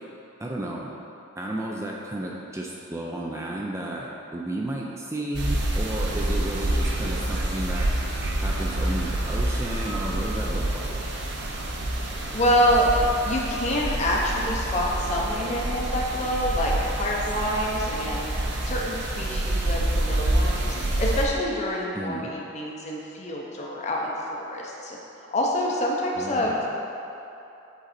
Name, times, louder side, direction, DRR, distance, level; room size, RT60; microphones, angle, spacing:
voice 1, 0.4-0.9 1.4-7.9 8.4-11.0 21.9-22.3 26.2-26.6, right 1 dB, 15° right, -2 dB, 0.4 m, -33 dB
sound 1, 5.3-21.2, right 1 dB, 55° right, 0.7 m, -27 dB
voice 2, 12.0-12.9 13.2-16.7 17.0-18.3 18.6-25.0 25.3-26.7, equal, 35° left, -3 dB, 0.7 m, -27 dB
8.0 x 3.9 x 4.2 m, 2.9 s
head